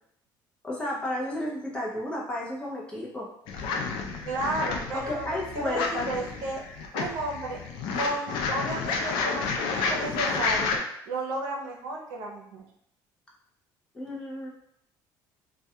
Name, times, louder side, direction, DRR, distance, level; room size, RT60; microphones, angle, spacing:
voice 1, 0.6-3.3 4.9-6.1 13.9-14.5, left 1 dB, 15° left, -4 dB, 0.5 m, -32 dB
sound 1, 3.5-10.8, left 4 dB, 80° left, 0.4 m, -30 dB
voice 2, 4.2-5.2 5.5-6.6 6.9-7.6 7.9-10.7 11.1-12.6, right 2 dB, 80° right, -1 dB, 0.6 m, -33 dB
2.3 x 2.2 x 2.7 m, 0.76 s
cardioid pair, 150°, 8 cm